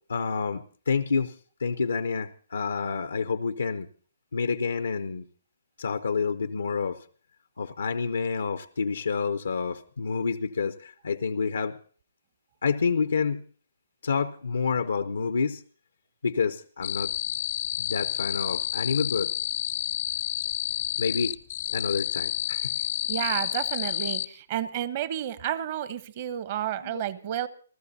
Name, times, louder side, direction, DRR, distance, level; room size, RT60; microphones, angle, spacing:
voice 1, 0.1-1.3 1.6-3.9 4.3-5.3 5.8-7.0 7.6-11.8 12.6-13.4 14.0-15.6 16.2-17.1 17.8-19.3 21.0-21.4 21.7-22.7 26.8-27.0, left 5 dB, 85° left, 10 dB, 0.7 m, -28 dB
sound 1, 16.8-24.3, left 13 dB, 45° left, 0.6 m, -30 dB
voice 2, 23.1-27.5, right 11 dB, 40° right, 14 dB, 1.0 m, -31 dB
29.5 x 13.5 x 2.8 m, 0.43 s
hypercardioid pair, 150°, 0 cm